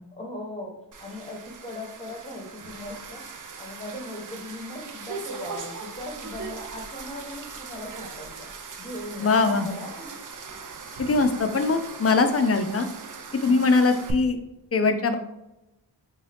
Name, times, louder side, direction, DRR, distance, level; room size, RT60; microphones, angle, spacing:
voice 1, 0.2-3.2 3.6-8.5 8.8-10.1 13.4-13.7, left 1 dB, 15° left, 0 dB, 0.9 m, -39 dB
sound 1, 0.9-14.1, right 5 dB, 50° right, 0.5 m, -40 dB
voice 2, 9.2-9.7 11.0-12.9 13.4-14.4 14.7-15.2, left 3 dB, 35° left, 8 dB, 0.4 m, -21 dB
3.7 x 2.7 x 3.3 m, 0.90 s
wide cardioid pair, 75°, 41 cm